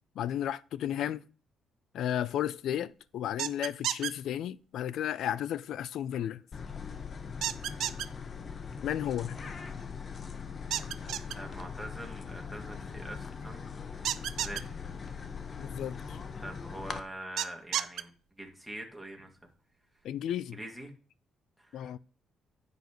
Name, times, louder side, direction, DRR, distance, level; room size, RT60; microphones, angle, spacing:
voice 1, 0.2-1.2 1.9-6.4 8.8-9.6 15.6-16.2 20.0-20.6 21.7-22.0, left 10 dB, 75° left, 0.4 m, -33 dB
sound 1, 3.4-4.1 7.4-8.1 10.7-11.3 14.0-14.6 17.4-18.0, right 11 dB, 75° right, 0.6 m, -31 dB
sound 2, 6.5-17.0, left 6 dB, 40° left, 1.0 m, -41 dB
voice 2, 11.4-14.9 15.5-15.8 16.4-19.3 20.5-20.9 21.6-21.9, right 1 dB, ahead, 2.4 m, -44 dB
10.5 x 8.0 x 3.2 m
cardioid pair, 100°, 0 cm